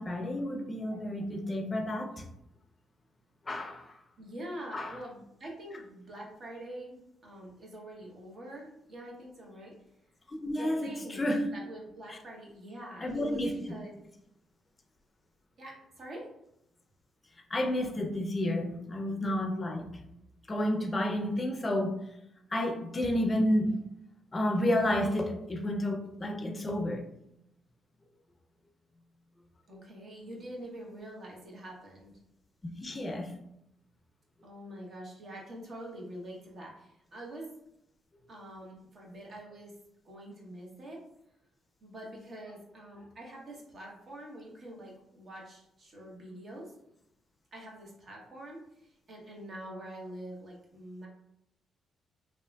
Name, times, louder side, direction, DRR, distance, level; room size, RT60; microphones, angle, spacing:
voice 1, 0.0-2.2 3.5-3.9 4.7-4.9 10.3-11.5 12.1-12.2 13.0-13.5 17.5-19.8 20.5-22.0 22.5-23.7 24.3-27.0 32.8-33.3, left 1 dB, 25° left, 4 dB, 0.5 m, -30 dB
voice 2, 4.2-9.7 10.5-11.2 11.5-13.9 15.6-16.3 29.7-32.1 34.4-37.5 38.3-39.7 40.0-41.0 41.8-46.7 47.5-51.1, right 1 dB, 50° right, -2 dB, 0.9 m, -45 dB
3.3 x 2.5 x 2.2 m, 0.80 s
cardioid pair, 90°, 0 cm